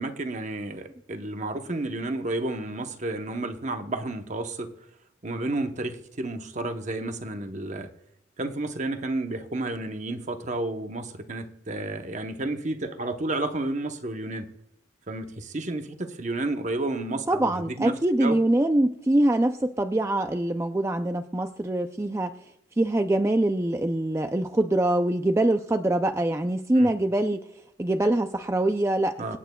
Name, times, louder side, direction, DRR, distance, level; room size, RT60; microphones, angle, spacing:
voice 1, 0.0-4.7 5.2-7.9 8.4-14.5 15.1-18.4 26.8-26.9 29.2-29.4, right 2 dB, 40° right, 0.8 m, -31 dB
voice 2, 17.3-22.3 22.8-27.4 27.8-29.4, right 1 dB, 15° right, 0.4 m, -24 dB
26.5 x 9.1 x 2.3 m
head